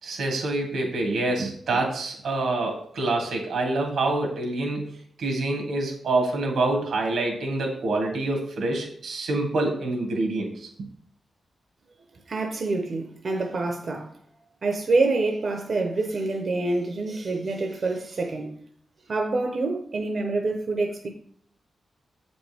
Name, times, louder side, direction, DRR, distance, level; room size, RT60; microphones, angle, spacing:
voice 1, 0.0-10.7, right 2 dB, 90° right, 2.0 m, -26 dB
voice 2, 12.3-14.1 14.6-18.6 19.1-21.1, right 3 dB, 45° right, 0.7 m, -26 dB
7.9 x 5.2 x 3.4 m
wide cardioid pair, 165°, 0 cm